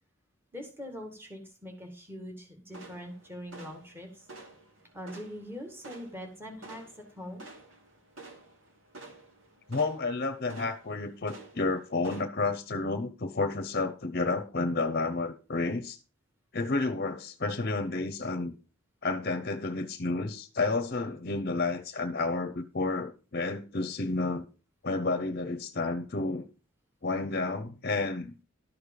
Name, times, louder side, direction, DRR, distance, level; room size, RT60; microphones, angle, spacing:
voice 1, 0.5-4.3 4.9-6.8 7.1-7.5, equal, 10° right, 2.0 m, -42 dB
sound 1, 2.7-12.2, right 2 dB, 80° right, 2.6 m, -51 dB
voice 2, 9.7-16.0 16.5-18.5 19.0-24.4 24.8-26.5 27.0-28.3, left 3 dB, 50° left, 0.8 m, -31 dB
12.0 x 6.6 x 5.3 m
head